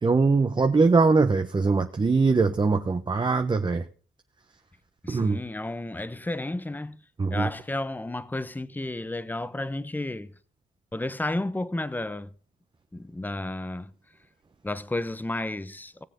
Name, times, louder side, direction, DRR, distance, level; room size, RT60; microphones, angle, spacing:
voice 1, 0.0-3.8 5.1-5.4 7.2-7.5, right 4 dB, 25° right, 1.1 m, -22 dB
voice 2, 5.0-7.0 7.3-10.3 10.9-12.3 12.9-13.9 14.6-16.0, left 2 dB, 10° left, 1.0 m, -32 dB
19.5 x 7.4 x 3.9 m
cardioid pair, 90°, 20 cm